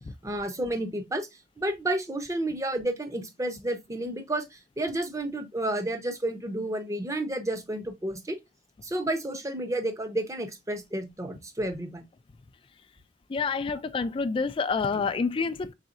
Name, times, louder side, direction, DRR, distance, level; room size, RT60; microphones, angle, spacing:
voice 1, 0.2-1.3 1.6-8.4 8.8-12.0 14.9-15.1, right 1 dB, 15° right, 0.7 m, -31 dB
voice 2, 13.3-15.7, left 4 dB, 30° left, 0.3 m, -28 dB
4.1 x 3.6 x 2.4 m
head